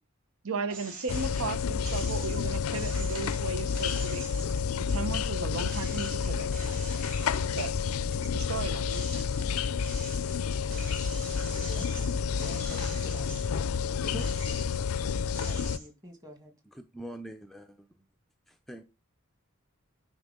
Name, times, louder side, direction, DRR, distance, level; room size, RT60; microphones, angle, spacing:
voice 1, 0.4-4.3 4.8-6.5 7.5-7.7 8.2-9.2, right 4 dB, 85° right, 0.9 m, -36 dB
sound 1, 0.7-1.5 1.8-5.3 5.6-8.2 8.6-13.6 14.1-14.9 15.3-15.9, right 3 dB, 40° right, 3.8 m, -45 dB
sound 2, 1.1-15.8, left 6 dB, 85° left, 0.4 m, -30 dB
voice 2, 12.3-13.4 14.0-14.4 15.4-16.5, left 1 dB, 15° right, 1.8 m, -45 dB
voice 3, 16.7-18.0 18.5-18.8, right 1 dB, ahead, 0.4 m, -44 dB
9.8 x 4.2 x 3.7 m
head